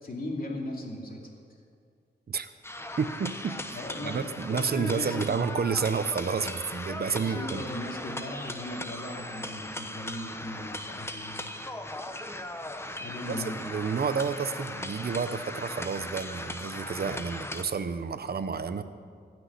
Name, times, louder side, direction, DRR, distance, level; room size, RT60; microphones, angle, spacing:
voice 1, 0.0-1.3 3.7-4.2 4.5-5.4 6.7-11.5 13.0-13.6, left 1 dB, 50° left, 0 dB, 2.7 m, -38 dB
sound 1, 2.6-17.6, left 1 dB, 15° left, 0.9 m, -38 dB
voice 2, 3.0-7.6 13.3-13.4 13.6-18.8, right 5 dB, 55° right, 11 dB, 0.8 m, -30 dB
15.5 x 6.2 x 9.7 m, 2.1 s
cardioid pair, 70°, 19 cm